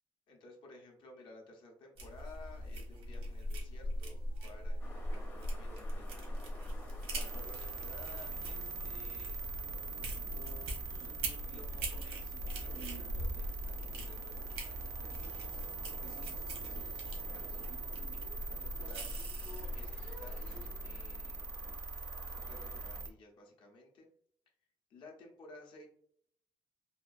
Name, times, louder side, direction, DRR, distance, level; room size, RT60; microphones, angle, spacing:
voice 1, 0.3-6.3 7.1-9.4 10.3-17.7 18.4-21.4 21.9-24.1 24.9-25.9, left 2 dB, 55° left, 1 dB, 0.7 m, -56 dB
sound 1, 2.0-20.7, equal, 75° right, 0.9 m, -42 dB
sound 2, 4.8-23.0, left 1 dB, 20° left, 0.6 m, -55 dB
sound 3, 7.2-23.1, right 3 dB, 30° right, 0.3 m, -42 dB
3.5 x 2.3 x 2.5 m, 0.64 s
cardioid pair, 175°, 10 cm